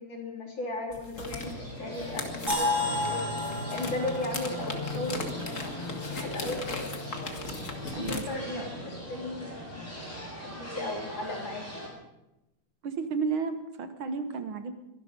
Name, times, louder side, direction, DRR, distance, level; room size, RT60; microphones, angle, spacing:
voice 1, 0.0-3.3 3.7-7.3 7.9-9.8 10.4-11.8, left 2 dB, 65° left, 0 dB, 4.2 m, -37 dB
sound 1, 0.9-8.2, left 3 dB, 40° left, 2.1 m, -39 dB
sound 2, 1.4-11.9, left 1 dB, 15° left, 7.0 m, -39 dB
sound 3, 2.5-6.4, left 2 dB, 20° right, 6.4 m, -33 dB
voice 2, 7.9-8.9 12.8-14.7, right 5 dB, 75° right, 8 dB, 2.1 m, -33 dB
23.5 x 11.5 x 5.3 m, 0.94 s
omnidirectional pair, 2.3 m